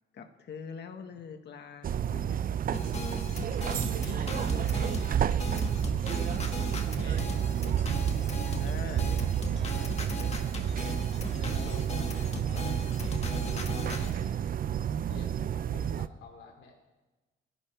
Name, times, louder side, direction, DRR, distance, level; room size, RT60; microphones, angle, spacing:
voice 1, 0.1-2.4 8.5-9.1 15.7-15.9, left 6 dB, 60° left, 5 dB, 1.6 m, -44 dB
sound 1, 1.8-16.1, right 9 dB, 45° right, 0.5 m, -30 dB
voice 2, 2.7-3.0 3.9-5.2 6.6-7.3 9.5-10.0 11.2-12.8 13.5-14.5 14.9-16.8, left 5 dB, 75° left, 1 dB, 3.0 m, -48 dB
sound 2, 2.7-14.1, left 3 dB, 35° left, 1.9 m, -39 dB
29.0 x 11.0 x 3.5 m, 1.2 s
cardioid pair, 90°, 20 cm